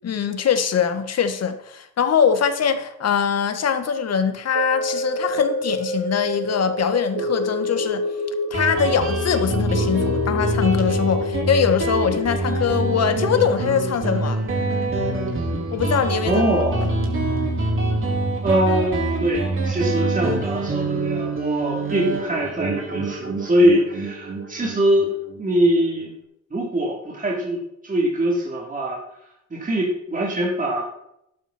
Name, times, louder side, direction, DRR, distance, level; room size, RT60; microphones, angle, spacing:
voice 1, 0.0-8.0 8.5-14.4 15.7-16.4, left 7 dB, 55° left, 9 dB, 1.8 m, -22 dB
sound 1, 4.5-14.9 15.4-15.5, left 2 dB, 65° right, 2.8 m, -28 dB
Guitar, 8.5-25.7, right 2 dB, 45° right, 4.6 m, -25 dB
voice 2, 16.2-16.8 18.4-25.1 25.4-26.1 26.5-29.0 29.5-30.8, right 1 dB, 25° right, -3 dB, 3.8 m, -22 dB
12.0 x 12.0 x 4.5 m, 0.79 s
cardioid pair, 90°, 30 cm